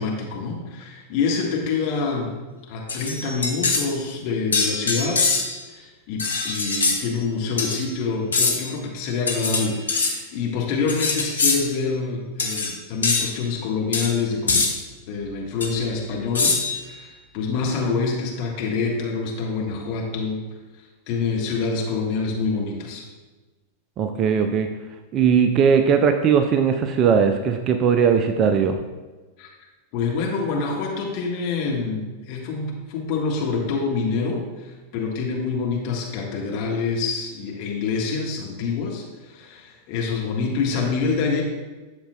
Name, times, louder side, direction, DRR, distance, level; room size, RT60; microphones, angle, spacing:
voice 1, 0.0-2.4 2.7-5.2 5.7-14.7 15.1-20.4 21.1-23.0 29.4-29.5 29.9-41.4, left 4 dB, 45° left, -1 dB, 1.4 m, -26 dB
sound 1, 2.9-3.9 4.5-5.6 6.2-7.0 7.6-7.8 8.3-8.7 9.3-10.1 10.9-11.6 12.4-12.7 13.0-13.3 13.9-14.1 14.5-14.7 15.6-15.7 16.4-16.8, left 4 dB, 70° left, 1.1 m, -23 dB
voice 2, 24.0-24.7 25.1-28.8, right 6 dB, 30° right, 7 dB, 0.4 m, -19 dB
11.0 x 6.6 x 2.2 m, 1.2 s
figure-of-eight pair, 90°, 0 cm